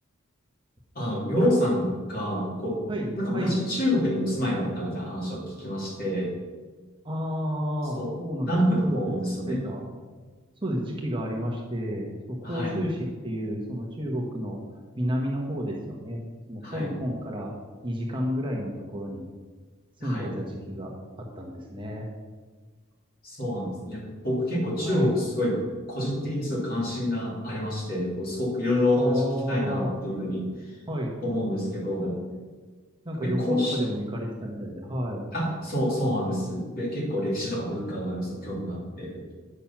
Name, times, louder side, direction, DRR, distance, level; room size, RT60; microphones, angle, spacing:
voice 1, 0.9-2.8 3.2-6.3 7.9-8.1 8.4-9.6 12.4-12.8 16.6-16.9 20.0-20.3 23.2-25.6 25.9-30.8 31.2-32.1 33.2-33.8 35.3-39.2, left 1 dB, 45° left, -4 dB, 3.1 m, -27 dB
voice 2, 2.9-3.5 7.0-9.8 10.6-14.6 15.0-16.2 16.5-17.5 17.8-19.2 20.0-20.9 21.2-22.1 24.8-25.1 29.0-29.9 30.9-31.1 32.0-32.1 33.0-35.3, equal, 25° right, -2 dB, 1.2 m, -31 dB
8.8 x 6.6 x 5.9 m, 1.4 s
head